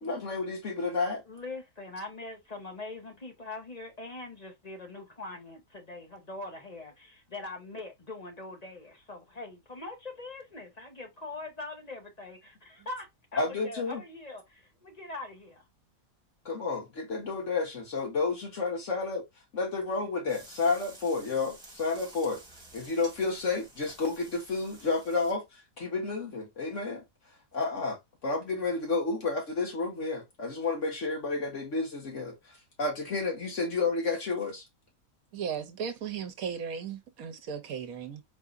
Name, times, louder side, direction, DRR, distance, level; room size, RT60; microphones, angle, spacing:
voice 1, 0.0-1.2 13.4-14.0 16.5-19.2 19.5-22.4 22.7-27.0 27.5-34.6, left 3 dB, 55° left, 1.9 m, -31 dB
voice 2, 1.3-15.6, left 2 dB, 25° left, 1.3 m, -42 dB
sound 1, 20.3-25.3, right 1 dB, 5° right, 2.0 m, -51 dB
voice 3, 35.3-38.2, right 7 dB, 70° right, 1.1 m, -36 dB
4.7 x 4.0 x 2.5 m
omnidirectional pair, 1.6 m